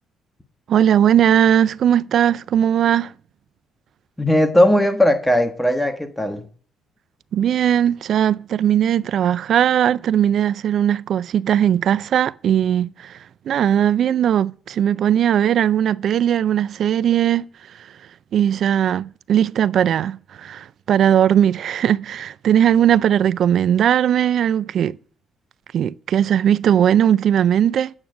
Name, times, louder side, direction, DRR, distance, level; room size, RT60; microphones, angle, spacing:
voice 1, 0.7-3.1 7.3-13.2 13.5-17.5 18.3-25.0 25.7-27.9, right 10 dB, 60° right, 0.4 m, -18 dB
voice 2, 4.2-6.4, left 1 dB, 5° left, 1.3 m, -17 dB
9.0 x 6.2 x 5.9 m
cardioid pair, 100°, 0 cm